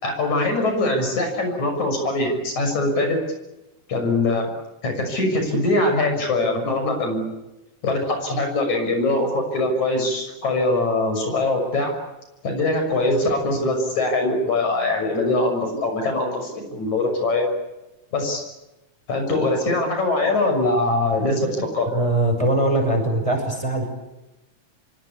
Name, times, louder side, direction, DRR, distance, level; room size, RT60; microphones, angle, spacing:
voice 1, 0.0-3.2 3.9-4.5 4.8-7.3 7.8-11.9 12.4-17.5 18.1-18.4 19.1-22.0, left 2 dB, 70° left, 4 dB, 7.7 m, -22 dB
voice 2, 21.9-23.9, right 1 dB, 10° right, 4 dB, 5.9 m, -21 dB
27.5 x 23.5 x 8.4 m, 0.99 s
omnidirectional pair, 3.5 m